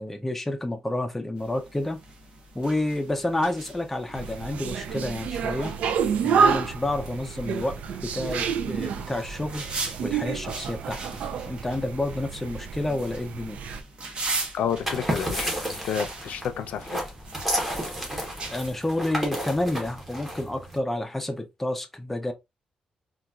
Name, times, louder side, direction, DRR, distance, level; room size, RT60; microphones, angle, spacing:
voice 1, 0.0-2.0 2.5-5.7 6.2-9.6 10.0-11.0 11.4-13.6 18.5-22.3, left 1 dB, 10° left, 0.4 m, -29 dB
sound 1, 1.4-18.7, right 3 dB, 45° right, 0.7 m, -40 dB
sound 2, 4.1-13.8, right 6 dB, 75° right, 0.3 m, -29 dB
voice 2, 14.5-17.0, left 8 dB, 90° left, 0.4 m, -30 dB
sound 3, 14.7-20.8, equal, 10° right, 0.9 m, -31 dB
4.0 x 2.2 x 2.3 m
wide cardioid pair, 160°, 2 cm